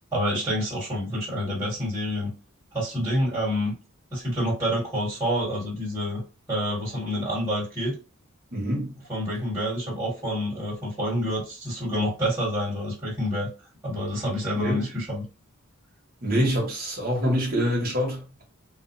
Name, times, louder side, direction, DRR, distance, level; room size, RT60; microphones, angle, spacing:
voice 1, 0.1-2.3 2.7-3.7 4.1-6.2 6.5-7.9 9.1-13.5 13.8-15.2, equal, 15° right, 1.5 m, -27 dB
voice 2, 8.5-9.0 14.6-14.9 16.2-18.4, equal, 45° right, 1.2 m, -25 dB
2.5 x 2.3 x 2.6 m
head